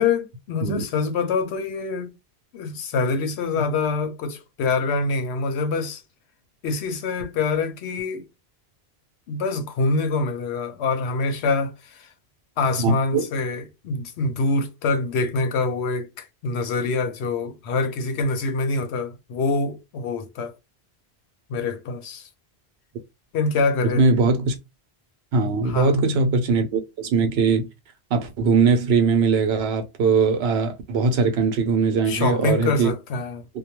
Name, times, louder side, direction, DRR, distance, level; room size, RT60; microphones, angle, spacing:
voice 1, 0.0-2.1 2.5-6.0 6.6-8.3 9.3-12.1 12.6-20.5 21.5-22.3 23.3-24.0 25.6-25.9 32.1-33.5, left 3 dB, 85° left, 0.9 m, -25 dB
voice 2, 12.8-13.3 23.9-24.6 25.3-27.7 28.1-32.9, right 4 dB, 75° right, 0.9 m, -20 dB
2.3 x 2.2 x 2.9 m
omnidirectional pair, 1.1 m